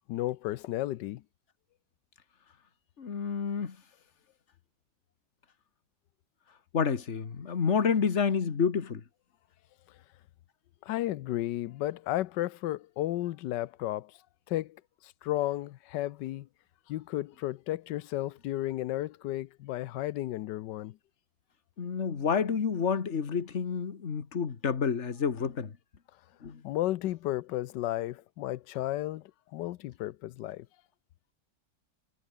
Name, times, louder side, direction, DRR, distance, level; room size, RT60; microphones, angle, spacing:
voice 1, 0.1-1.2 10.8-14.2 14.5-16.5 16.9-21.0 26.6-30.7, left 15 dB, 90° left, 1.3 m, -33 dB
voice 2, 3.0-3.8 6.7-9.0 21.8-25.8 26.4-26.6, left 6 dB, 45° left, 1.8 m, -29 dB
omnidirectional pair, 1.8 m